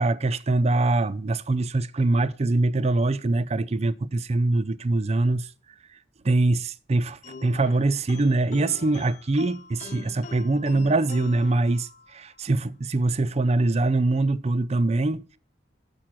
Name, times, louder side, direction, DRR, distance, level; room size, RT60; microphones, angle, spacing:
voice 1, 0.0-5.5 6.2-15.4, right 2 dB, 35° right, 0.5 m, -23 dB
sound 1, 7.2-12.3, left 4 dB, 40° left, 0.4 m, -43 dB
7.6 x 5.9 x 6.2 m
head